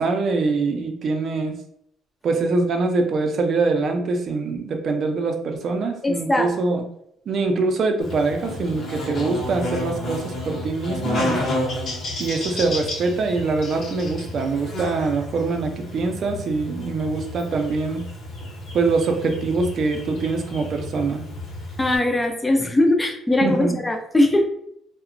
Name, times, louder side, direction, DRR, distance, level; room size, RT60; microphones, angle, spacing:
voice 1, 0.0-1.6 2.2-6.8 7.3-11.4 12.2-18.0 18.7-21.2 23.4-23.8, right 3 dB, 50° right, 4 dB, 0.5 m, -24 dB
voice 2, 6.0-6.8 21.8-24.4, left 1 dB, 15° left, 5 dB, 0.4 m, -20 dB
Buzz, 8.0-22.0, left 1 dB, 50° left, 0.8 m, -31 dB
2.7 x 2.1 x 2.5 m, 0.72 s
cardioid pair, 110°, 0 cm